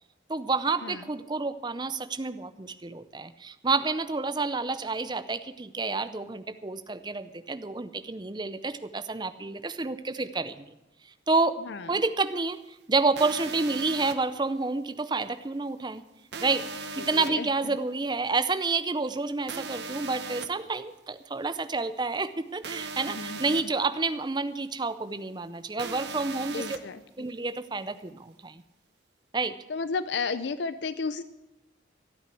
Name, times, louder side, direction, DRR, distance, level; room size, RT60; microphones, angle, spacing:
voice 1, 0.3-10.7 11.3-11.6 11.9-12.6 12.9-16.0 16.4-26.8 27.2-28.6 29.3-29.5, right 3 dB, 25° right, 12 dB, 0.6 m, -29 dB
voice 2, 11.6-12.0 17.0-17.5 23.1-23.6 26.5-27.3 29.7-31.2, left 4 dB, 70° left, 13 dB, 0.5 m, -33 dB
sound 1, 13.2-14.1 16.3-17.3 19.5-20.5 22.6-23.6 25.8-26.8, right 4 dB, 65° right, 1.0 m, -37 dB
13.5 x 8.8 x 8.3 m, 0.99 s
head